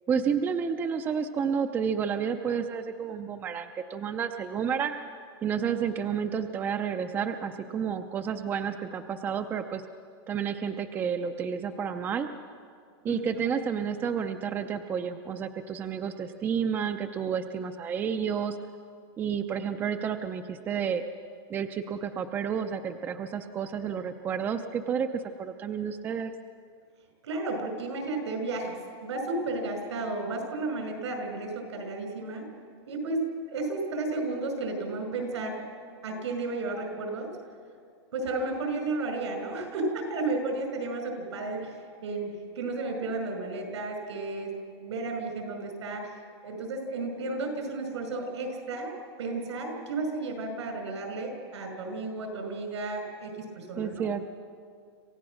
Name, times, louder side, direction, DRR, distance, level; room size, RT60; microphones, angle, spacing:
voice 1, 0.1-5.0 5.4-9.8 10.3-12.3 13.0-18.6 19.2-21.0 21.5-26.3 53.8-54.2, right 7 dB, 15° right, 7 dB, 0.5 m, -30 dB
voice 2, 27.2-32.5 32.9-35.6 36.0-37.3 38.1-46.2 46.4-48.9 49.2-54.0, right 3 dB, 90° right, 5 dB, 5.6 m, -33 dB
27.0 x 15.0 x 6.3 m, 2.1 s
supercardioid pair, 165°, 14 cm